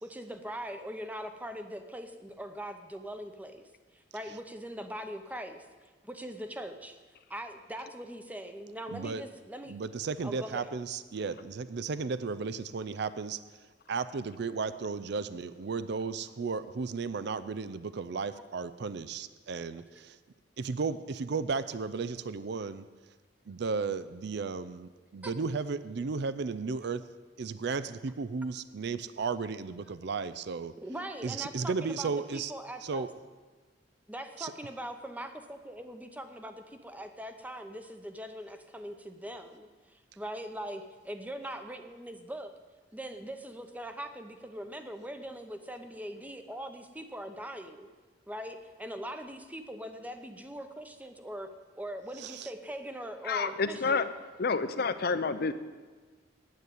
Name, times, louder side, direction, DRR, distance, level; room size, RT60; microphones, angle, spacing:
voice 1, 0.0-5.6 6.0-7.0 7.3-9.8 10.2-10.7 25.2-25.3 30.8-33.1 34.1-42.5 42.9-47.9 48.3-54.1, right 1 dB, 10° right, 7 dB, 0.8 m, -41 dB
voice 2, 8.9-9.2 9.7-13.4 13.9-20.2 20.6-22.8 23.5-27.0 27.4-30.7 31.2-32.5 32.8-33.1 34.4-34.5 52.2-52.5, right 4 dB, 65° right, 14 dB, 0.5 m, -34 dB
voice 3, 53.2-54.1 54.4-55.5, left 4 dB, 55° left, 12 dB, 0.7 m, -29 dB
9.4 x 8.2 x 9.2 m, 1.3 s
head